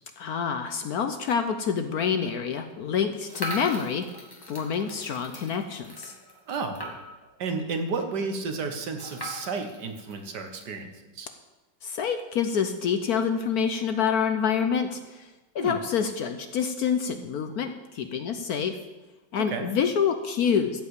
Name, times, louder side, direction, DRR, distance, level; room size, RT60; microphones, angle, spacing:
voice 1, 0.2-4.0 4.5-6.1 11.8-15.3 15.5-18.8 19.3-20.8, left 7 dB, 65° left, 8 dB, 1.0 m, -27 dB
sound 1, 3.3-7.3 7.7-7.8 8.0-8.1 9.0-10.7, equal, 10° left, 1.9 m, -39 dB
voice 2, 6.5-6.8 7.4-11.3 15.6-15.8 19.5-19.7, right 4 dB, 65° right, 6 dB, 1.7 m, -32 dB
14.0 x 5.4 x 8.1 m, 1.1 s
omnidirectional pair, 2.0 m